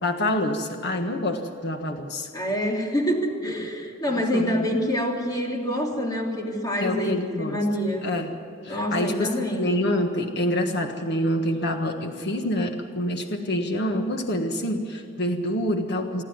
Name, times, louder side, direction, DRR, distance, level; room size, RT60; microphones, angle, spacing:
voice 1, 0.0-2.3 3.4-3.5 4.1-4.7 6.8-7.6 8.0-8.3 8.6-16.2, left 1 dB, 55° left, 4 dB, 1.5 m, -27 dB
voice 2, 2.3-8.0 8.7-9.6, equal, 20° left, 0 dB, 3.1 m, -26 dB
27.5 x 11.5 x 9.5 m, 2.5 s
head